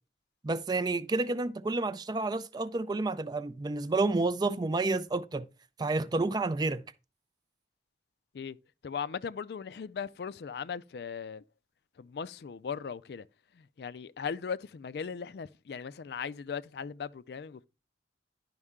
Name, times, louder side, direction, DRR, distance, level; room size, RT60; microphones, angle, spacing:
voice 1, 0.4-5.4 5.8-6.8, right 3 dB, 25° right, 0.3 m, -30 dB
voice 2, 8.8-11.4 12.0-13.3 13.5-17.7, left 6 dB, 65° left, 0.4 m, -38 dB
11.0 x 5.4 x 3.6 m
head